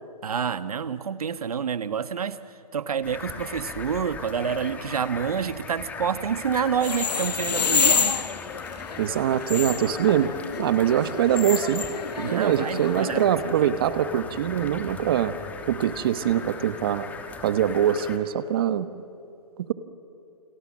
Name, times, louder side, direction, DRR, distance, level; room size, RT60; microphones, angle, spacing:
voice 1, 0.2-2.4 2.7-8.2 12.2-13.8, right 7 dB, 60° right, 12 dB, 1.5 m, -28 dB
sound 1, 3.0-18.2, left 5 dB, 5° left, 1.1 m, -39 dB
sound 2, 6.7-13.2, left 6 dB, 75° left, 1.5 m, -28 dB
voice 2, 9.0-10.3 10.6-11.9 12.2-15.3 15.6-17.1 17.4-18.9 19.6-19.7, right 10 dB, 35° right, 13 dB, 1.1 m, -23 dB
29.0 x 27.0 x 7.5 m, 2.5 s
hypercardioid pair, 155°, 21 cm